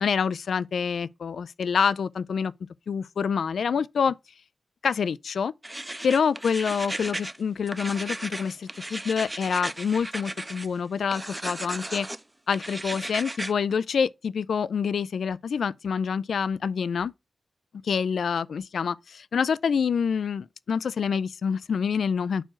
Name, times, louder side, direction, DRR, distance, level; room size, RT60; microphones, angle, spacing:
voice 1, 0.0-2.5 2.9-4.2 4.8-5.5 6.0-12.1 12.5-17.1 17.8-22.4, left 6 dB, 85° left, 0.4 m, -27 dB
sound 1, 5.6-7.4 7.7-10.7 11.1-12.2 12.5-13.5, right 1 dB, 10° right, 0.3 m, -35 dB
4.6 x 4.4 x 5.8 m
wide cardioid pair, 155°, 0 cm